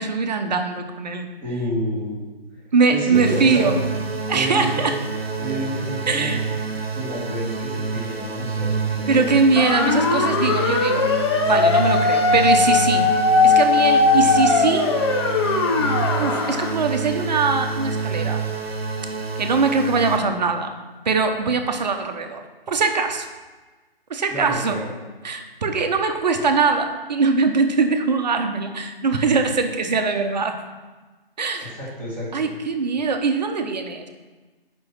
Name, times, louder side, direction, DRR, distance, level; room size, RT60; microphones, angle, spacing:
voice 1, 0.0-1.3 2.7-3.8 4.3-4.9 6.1-6.4 9.1-11.1 11.4-13.1 13.4-14.9 16.2-18.4 19.4-20.7 21.0-22.4 22.7-23.3 24.1-24.8 25.2-30.5 31.4-31.7 32.3-34.1, right 4 dB, 45° right, 6 dB, 1.0 m, -21 dB
voice 2, 1.4-2.3 2.9-3.7 4.3-4.9 5.4-6.4 6.9-9.5 24.3-24.9 31.6-32.5, equal, 5° left, -9 dB, 2.3 m, -29 dB
sound 1, 3.1-20.2, right 4 dB, 80° right, 1.1 m, -28 dB
sound 2, 9.6-16.8, left 4 dB, 30° left, 0.6 m, -19 dB
7.7 x 5.6 x 5.9 m, 1.3 s
figure-of-eight pair, 145°, 30 cm